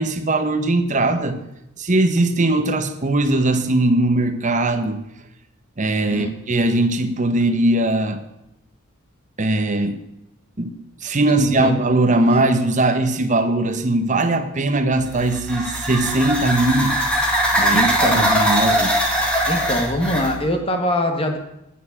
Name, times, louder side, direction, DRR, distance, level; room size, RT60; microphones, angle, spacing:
voice 1, 0.0-1.4 1.8-5.0 5.8-8.2 9.4-10.0 10.6-10.8 11.0-17.0 17.5-18.9, right 2 dB, 35° right, 9 dB, 0.8 m, -20 dB
voice 2, 11.3-11.8 17.5-18.3 19.5-21.4, left 1 dB, 25° left, 5 dB, 1.4 m, -23 dB
sound 1, 15.1-20.3, equal, 5° left, 1.7 m, -21 dB
9.2 x 6.5 x 7.3 m, 0.86 s
head